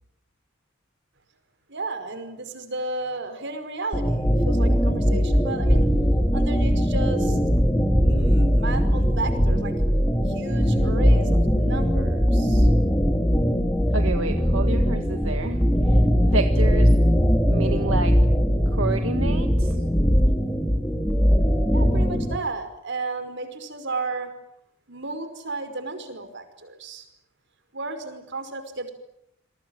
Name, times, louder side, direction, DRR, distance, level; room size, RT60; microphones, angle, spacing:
voice 1, 1.7-5.8 6.3-7.4 8.0-9.8 10.3-12.7 21.7-24.3 24.9-27.1 27.7-28.9, right 3 dB, 65° right, 9 dB, 5.4 m, -33 dB
sound 1, 3.9-22.4, equal, 10° left, 3.2 m, -20 dB
voice 2, 13.9-17.0 17.5-18.2 18.7-19.8, right 3 dB, 85° right, 6 dB, 1.8 m, -30 dB
28.5 x 22.5 x 9.1 m, 0.80 s
head